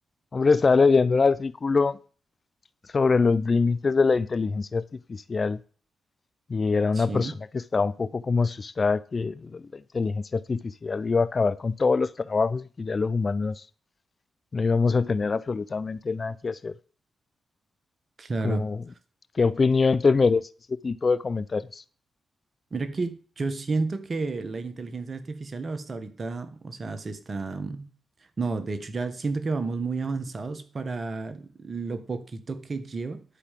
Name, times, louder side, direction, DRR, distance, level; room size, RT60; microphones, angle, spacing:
voice 1, 0.3-2.0 2.9-5.6 6.5-13.6 14.5-16.7 18.4-18.8 19.3-20.4 20.8-21.8, left 4 dB, 45° left, 0.6 m, -24 dB
voice 2, 6.9-7.3 18.2-18.6 22.7-27.9 28.4-33.2, right 3 dB, 50° right, 1.6 m, -31 dB
11.0 x 5.0 x 7.6 m
supercardioid pair, 45°, 0 cm